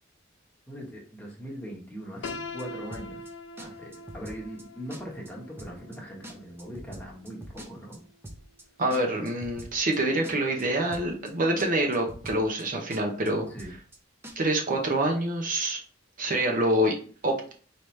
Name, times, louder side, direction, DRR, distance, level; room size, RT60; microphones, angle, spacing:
voice 1, 0.7-2.3 2.5-3.2 3.6-8.0 13.5-13.7, equal, 10° left, -3 dB, 1.2 m, -40 dB
Piano, 2.2-8.1, left 2 dB, 70° left, 0.4 m, -43 dB
sound 1, 2.2-2.6 2.9-3.3 3.6-3.7 3.9-4.6 4.9-5.3 5.6-6.0 6.2-8.0 8.2-8.6 8.9-10.0 10.2-10.6 10.9-11.3 11.6-11.7 11.9-12.6 12.9-13.3 13.6-14.0 14.2-14.3, right 1 dB, 10° right, 0.6 m, -44 dB
voice 2, 8.8-13.5 14.4-15.8 16.2-16.9 17.2-17.5, right 1 dB, 45° right, 2 dB, 0.7 m, -26 dB
4.8 x 2.8 x 3.2 m, 0.42 s
head